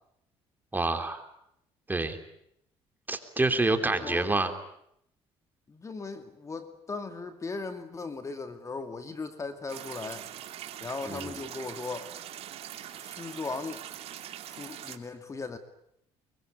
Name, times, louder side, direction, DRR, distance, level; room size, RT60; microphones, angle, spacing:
voice 1, 0.7-1.3 1.9-2.2 3.1-4.5 11.1-11.3, right 2 dB, 15° right, 7 dB, 3.4 m, -27 dB
voice 2, 3.8-4.4 5.7-10.3 10.8-12.1 13.0-13.8 14.5-15.6, left 4 dB, 25° left, 8 dB, 2.4 m, -38 dB
sound 1, 9.7-15.0, right 11 dB, 65° right, 2.7 m, -42 dB
24.0 x 23.0 x 9.5 m, 0.76 s
supercardioid pair, 90°, 11 cm